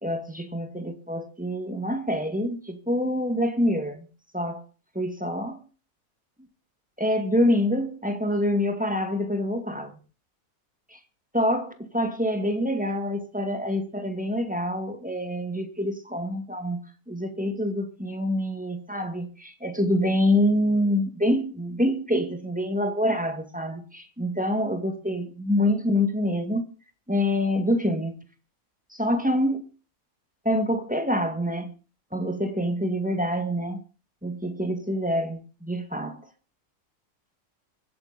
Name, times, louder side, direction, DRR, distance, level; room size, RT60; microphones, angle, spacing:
voice 1, 0.0-4.1 4.3-4.6 4.9-5.7 6.4-6.5 7.0-10.0 10.9-11.0 11.3-26.7 27.1-28.2 28.9-29.6 30.4-31.7 32.1-33.8 34.2-36.3, left 1 dB, 5° right, 1.9 m, -26 dB
24.5 x 9.0 x 4.2 m
omnidirectional pair, 1.5 m